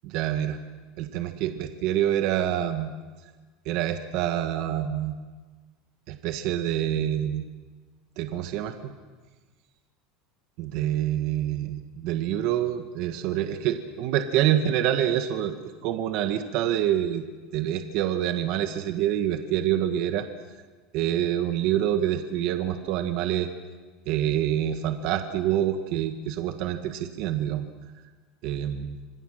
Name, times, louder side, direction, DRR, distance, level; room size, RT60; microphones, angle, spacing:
voice 1, 0.0-0.6 1.0-2.9 3.6-5.1 6.1-7.5 8.2-8.9 10.6-17.2 17.5-20.3 20.9-23.5 24.0-27.7 28.4-29.0, right 11 dB, 45° right, 6 dB, 1.5 m, -26 dB
26.5 x 26.5 x 6.5 m, 1.4 s
cardioid pair, 180°, 0 cm